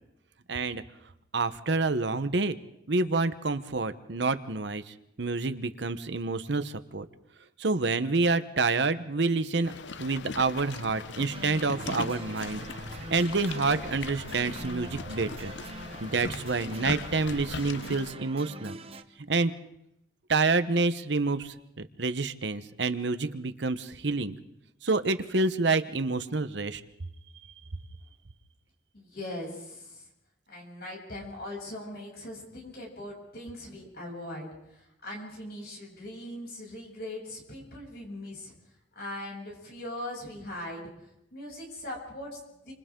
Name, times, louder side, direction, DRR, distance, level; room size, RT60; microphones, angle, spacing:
voice 1, 0.5-0.8 1.3-2.6 2.9-7.0 7.6-9.7 10.0-12.6 13.1-15.6 16.0-18.8 19.3-19.5 20.3-24.4 24.8-26.8, right 3 dB, 75° right, 11 dB, 1.0 m, -28 dB
sound 1, 9.6-18.1, left 4 dB, 75° left, 0.7 m, -40 dB
sound 2, 11.3-19.0, right 2 dB, 30° right, 0.9 m, -43 dB
voice 2, 28.9-30.1 30.5-38.5 38.9-40.9 41.3-42.7, left 1 dB, 55° left, -2 dB, 7.8 m, -40 dB
29.5 x 26.0 x 3.8 m, 0.80 s
head